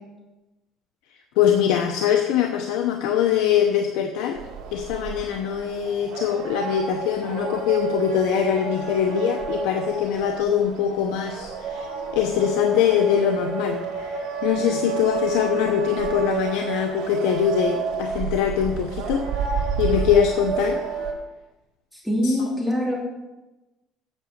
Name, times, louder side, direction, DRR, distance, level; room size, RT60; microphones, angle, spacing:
voice 1, 1.4-4.4 4.7-19.4 19.8-20.8 22.2-22.3, left 9 dB, 90° left, 4 dB, 0.8 m, -23 dB
sound 1, 4.3-21.1, right 6 dB, 80° right, 2.0 m, -30 dB
voice 2, 21.9-23.0, left 1 dB, 5° left, -3 dB, 2.8 m, -23 dB
8.6 x 6.2 x 6.6 m, 1.1 s
cardioid pair, 120°, 0 cm